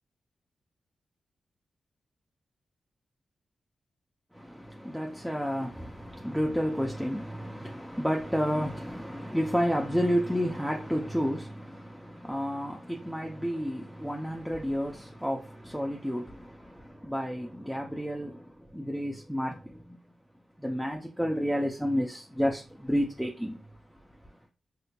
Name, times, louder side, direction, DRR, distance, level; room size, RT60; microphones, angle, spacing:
voice 1, 4.3-20.0 20.6-23.7, equal, ahead, 0.5 m, -31 dB
4.2 x 2.8 x 2.2 m
supercardioid pair, 40°, 0 cm